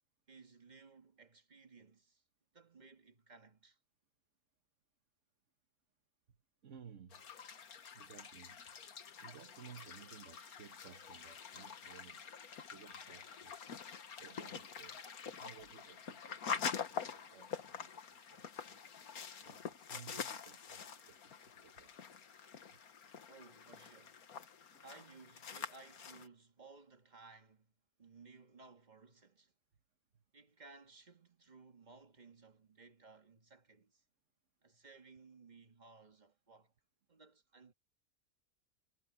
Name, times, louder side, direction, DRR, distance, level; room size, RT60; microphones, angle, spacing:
voice 1, 0.3-2.2 2.5-3.8 23.3-24.4 24.8-27.7 28.0-29.5 30.3-34.0 34.6-36.7 37.1-37.7, right 4 dB, 30° right, 1.7 m, -59 dB
voice 2, 6.6-7.2 7.9-8.6 9.2-12.2 12.7-13.7 14.2-18.8 19.4-21.9 22.7-22.8 24.7-24.8 30.1-30.2, right 7 dB, 55° right, 1.5 m, -58 dB
sound 1, 7.1-26.3, left 7 dB, 75° left, 1.8 m, -46 dB
omnidirectional pair, 1.6 m